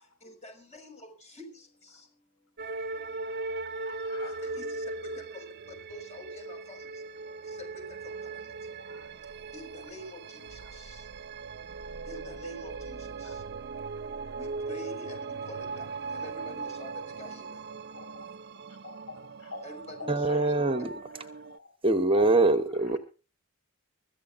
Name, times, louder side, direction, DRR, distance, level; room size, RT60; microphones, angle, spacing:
voice 1, 0.2-2.1 4.2-5.5 5.9-6.9 7.5-8.4 9.5-11.0 12.1-13.4 13.7-14.1 14.4-17.6 19.6-20.4, left 2 dB, 30° left, 5.9 m, -47 dB
sound 1, 2.6-21.6, right 3 dB, 50° right, 0.6 m, -39 dB
voice 2, 2.9-4.6 8.1-8.2 8.8-9.3 10.6-10.8 11.8-12.0 13.2-13.5 17.1-18.2 18.7-19.6 20.0-20.5 21.1-21.8 22.2-22.3 22.7-23.0, left 3 dB, 60° left, 5.2 m, -49 dB
voice 3, 20.1-20.9 21.8-23.0, right 2 dB, 25° right, 1.0 m, -23 dB
24.5 x 14.5 x 2.6 m
head